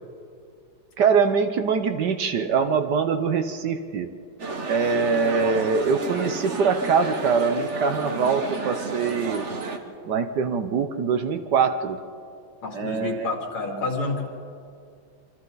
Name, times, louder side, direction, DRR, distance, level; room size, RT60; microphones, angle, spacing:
voice 1, 1.0-4.1 4.7-9.4 10.0-12.0 12.7-13.3, right 5 dB, 60° right, 8 dB, 1.4 m, -23 dB
sound 1, 4.4-9.8, right 3 dB, 40° right, 1.5 m, -31 dB
voice 2, 12.6-14.2, left 3 dB, 85° left, 0 dB, 3.8 m, -28 dB
26.5 x 25.0 x 4.0 m, 2.4 s
omnidirectional pair, 2.2 m